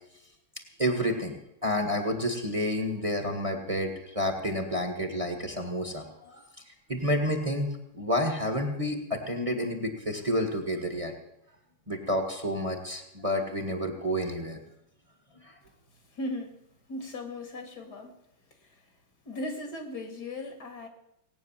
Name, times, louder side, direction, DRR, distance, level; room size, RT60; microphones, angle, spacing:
voice 1, 0.8-1.3 1.6-6.4 6.9-11.1 11.9-14.6 15.4-15.5, equal, 20° right, 5 dB, 1.8 m, -29 dB
voice 2, 16.1-16.5 16.9-18.1 18.6-18.8 19.3-20.9, left 1 dB, 60° left, 6 dB, 2.9 m, -37 dB
18.5 x 9.3 x 7.5 m, 0.80 s
omnidirectional pair, 2.0 m